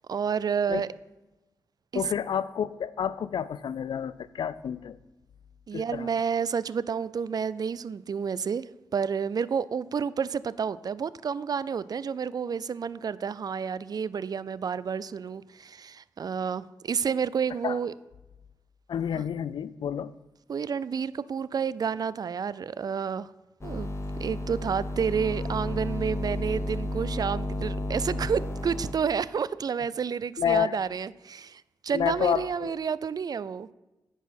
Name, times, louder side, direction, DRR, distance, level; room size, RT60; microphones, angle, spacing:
voice 1, 0.1-0.9 1.9-2.0 5.7-8.7 8.9-17.9 20.5-23.3 23.6-23.9 24.2-33.7, right 6 dB, 50° right, 18 dB, 0.4 m, -30 dB
voice 2, 1.9-5.0 5.7-6.1 17.6-17.8 18.9-20.1 30.4-30.7 31.9-32.8, left 8 dB, 70° left, 17 dB, 0.4 m, -29 dB
sound 1, 23.6-28.9, left 1 dB, 35° left, 1.2 m, -32 dB
9.4 x 4.8 x 5.9 m, 1.0 s
cardioid pair, 50°, 8 cm